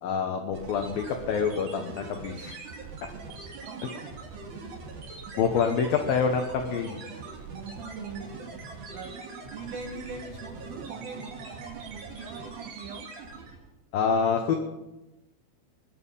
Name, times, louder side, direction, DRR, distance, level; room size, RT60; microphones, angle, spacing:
voice 1, 0.0-2.6 5.4-7.0 13.9-14.6, left 6 dB, 80° left, 5 dB, 2.0 m, -26 dB
sound 1, 0.5-13.7, right 4 dB, 45° right, 3.3 m, -42 dB
voice 2, 3.6-4.1 7.5-8.4 8.9-13.1, right 5 dB, 90° right, 5 dB, 2.1 m, -41 dB
21.5 x 10.5 x 5.6 m, 1.0 s
omnidirectional pair, 5.8 m